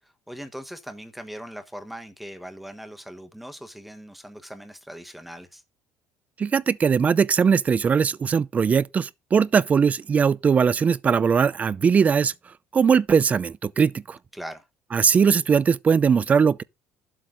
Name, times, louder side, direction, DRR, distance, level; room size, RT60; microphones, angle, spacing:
voice 1, 0.0-5.6 14.3-14.7, equal, ahead, 1.1 m, -40 dB
voice 2, 6.4-12.3 12.7-14.2 14.9-16.6, right 6 dB, 30° right, 0.5 m, -20 dB
11.5 x 7.8 x 3.8 m
cardioid pair, 115°, 5 cm